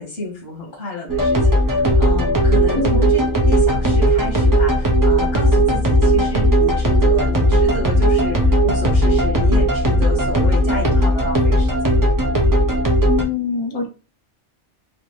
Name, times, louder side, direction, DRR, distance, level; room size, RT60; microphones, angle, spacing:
voice 1, 0.0-1.4 1.7-3.2 3.5-12.0, left 2 dB, 70° left, -1 dB, 1.9 m, -30 dB
sound 1, 1.1-13.2, equal, 30° right, 0.4 m, -16 dB
voice 2, 2.7-3.1 13.1-13.9, left 5 dB, 30° left, 4 dB, 0.5 m, -24 dB
4.2 x 2.5 x 3.1 m, 0.33 s
omnidirectional pair, 1.3 m